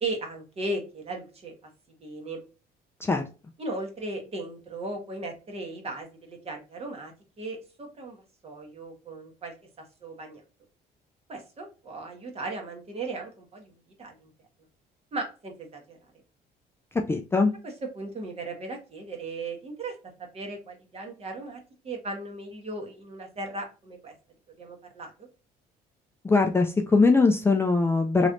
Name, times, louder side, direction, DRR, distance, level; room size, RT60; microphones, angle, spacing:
voice 1, 0.0-1.5 2.0-2.4 3.6-7.1 7.4-8.2 8.4-9.5 10.0-10.4 11.3-14.3 15.1-16.0 17.9-19.9 20.3-21.6 21.8-24.1 24.6-25.1, right 2 dB, 35° right, 3 dB, 1.3 m, -36 dB
voice 2, 17.1-17.5 26.2-28.3, left 3 dB, 15° left, 4 dB, 0.4 m, -21 dB
3.1 x 3.1 x 2.5 m, 0.33 s
cardioid pair, 110°, 17 cm